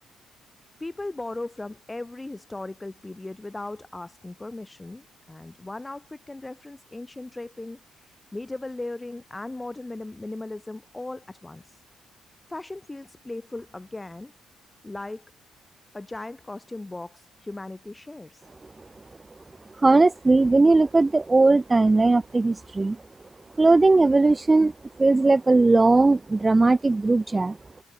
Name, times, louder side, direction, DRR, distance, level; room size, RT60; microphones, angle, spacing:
voice 1, 0.8-11.8 12.5-14.3 14.8-15.3 15.9-18.4 21.0-21.1, left 2 dB, 10° left, 6.8 m, -37 dB
voice 2, 19.8-23.0 23.6-24.7 25.0-27.6, right 3 dB, 15° right, 0.4 m, -18 dB
cardioid pair, 160°, 0 cm